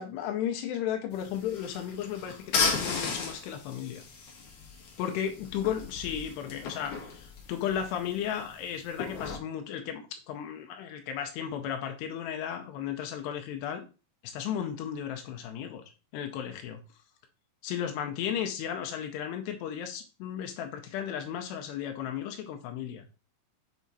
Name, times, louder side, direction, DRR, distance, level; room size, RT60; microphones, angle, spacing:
voice 1, 0.0-4.0 5.0-13.9 14.2-15.8 16.1-16.8 17.6-23.0, left 9 dB, 80° left, 5 dB, 2.4 m, -34 dB
sound 1, 1.1-9.4, left 5 dB, 60° left, 2.1 m, -35 dB
7.3 x 3.4 x 4.0 m, 0.32 s
omnidirectional pair, 5.5 m